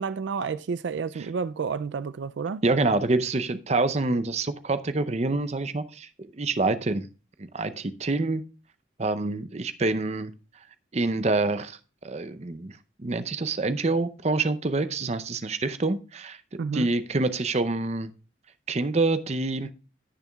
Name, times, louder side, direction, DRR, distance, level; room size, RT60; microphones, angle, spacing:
voice 1, 0.0-2.6 16.6-16.9, right 5 dB, 75° right, 0.4 m, -30 dB
voice 2, 2.6-7.1 7.4-8.4 9.0-10.3 10.9-11.8 12.0-12.7 13.0-18.1 18.7-19.7, right 3 dB, 35° right, 0.6 m, -26 dB
16.5 x 6.8 x 2.3 m
head